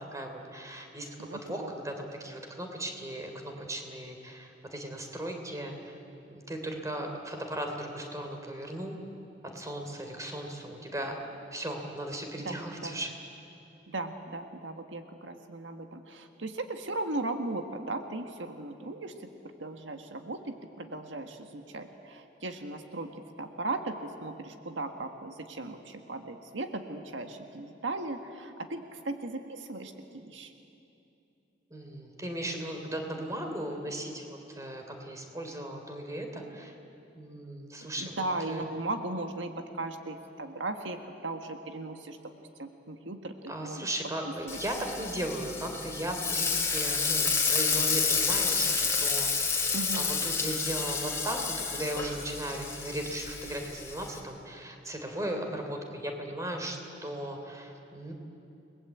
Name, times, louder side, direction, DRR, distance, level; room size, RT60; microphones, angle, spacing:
voice 1, 0.0-5.9 6.3-9.0 9.5-11.1 11.5-13.1 31.7-36.7 37.1-38.7 43.5-58.1, right 1 dB, 15° right, 3 dB, 3.3 m, -37 dB
voice 2, 1.2-1.7 12.4-13.0 13.9-30.5 38.0-42.2 42.6-43.9 44.2-44.6 49.7-50.1, right 2 dB, 85° right, 6 dB, 1.6 m, -37 dB
Frying (food), 44.5-54.2, left 5 dB, 15° left, 3.4 m, -30 dB
30.0 x 20.5 x 8.4 m, 2.8 s
head